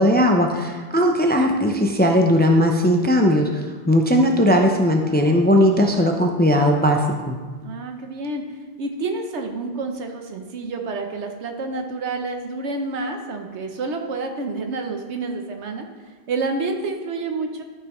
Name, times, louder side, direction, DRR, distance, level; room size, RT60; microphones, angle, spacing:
voice 1, 0.0-7.4, equal, 15° left, 2 dB, 0.4 m, -18 dB
voice 2, 7.6-8.4 8.8-15.9 16.3-17.6, right 3 dB, 85° right, 4 dB, 1.2 m, -28 dB
12.5 x 5.5 x 3.1 m, 1.5 s
omnidirectional pair, 1.1 m